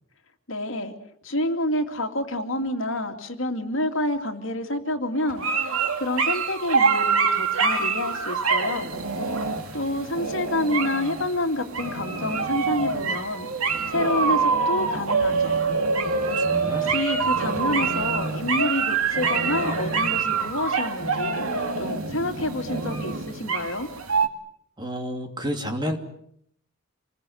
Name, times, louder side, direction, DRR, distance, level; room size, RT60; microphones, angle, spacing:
voice 1, 0.5-0.9 1.2-8.9 9.4-9.5 9.7-15.6 16.7-21.5 21.8-23.9, left 1 dB, 65° left, 5 dB, 2.7 m, -28 dB
sound 1, 5.3-24.3, right 4 dB, 85° right, 2.4 m, -25 dB
voice 2, 16.0-17.0 24.8-26.0, equal, 20° right, 4 dB, 2.7 m, -31 dB
27.5 x 21.5 x 7.9 m, 0.72 s
head